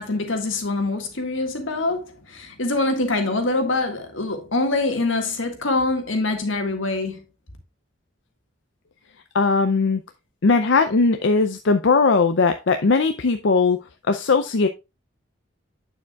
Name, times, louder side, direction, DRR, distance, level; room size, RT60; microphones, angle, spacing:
voice 1, 0.0-7.2, left 2 dB, 90° left, 1.8 m, -24 dB
voice 2, 9.3-10.0 10.4-13.8 14.1-14.7, left 4 dB, 70° left, 0.6 m, -19 dB
8.5 x 7.1 x 2.4 m
head